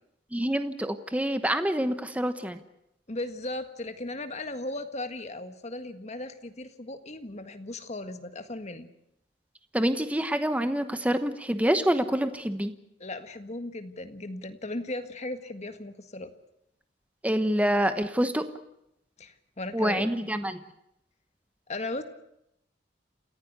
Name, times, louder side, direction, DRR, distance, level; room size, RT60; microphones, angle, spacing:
voice 1, 0.3-2.6 9.7-12.7 17.2-18.4 19.7-20.6, equal, 10° right, 9 dB, 1.1 m, -26 dB
voice 2, 3.1-8.9 13.0-16.3 19.2-20.1 21.7-22.0, left 2 dB, 40° left, 8 dB, 1.7 m, -37 dB
28.5 x 15.5 x 8.1 m, 0.81 s
head